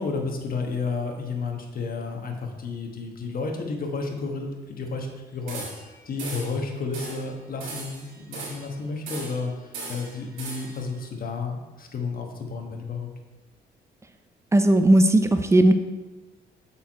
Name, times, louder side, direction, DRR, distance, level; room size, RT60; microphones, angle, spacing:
voice 1, 0.0-5.1 5.3-5.7 6.0-13.1, left 4 dB, 45° left, 2 dB, 1.3 m, -31 dB
sound 1, 5.5-5.9 6.2-6.6 6.9-7.3 7.6-8.7 9.1-9.5 9.7-10.8, right 3 dB, 85° right, 2.0 m, -37 dB
voice 2, 14.5-15.7, right 1 dB, 15° right, 8 dB, 0.6 m, -17 dB
6.7 x 4.7 x 4.6 m, 1.2 s
cardioid pair, 90°, 20 cm